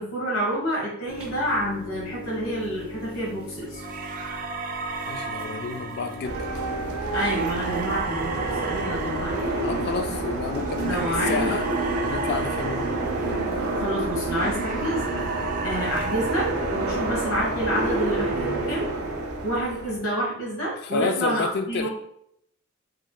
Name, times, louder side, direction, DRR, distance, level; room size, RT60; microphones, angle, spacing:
voice 1, 0.0-3.8 7.1-8.3 8.6-9.4 10.9-11.6 13.7-15.0 15.6-18.9 19.4-21.9, equal, 85° left, -4 dB, 1.3 m, -28 dB
sound 1, 1.1-19.6, left 1 dB, 5° right, 0.8 m, -41 dB
sound 2, 3.8-14.0 14.3-17.7, right 4 dB, 40° right, 0.4 m, -34 dB
voice 2, 5.1-6.4 9.6-11.7 12.0-12.9 20.8-21.9, left 4 dB, 50° left, 7 dB, 0.3 m, -30 dB
sound 3, 6.2-20.0, right 2 dB, 85° right, 0.7 m, -28 dB
3.2 x 3.0 x 2.2 m, 0.73 s
head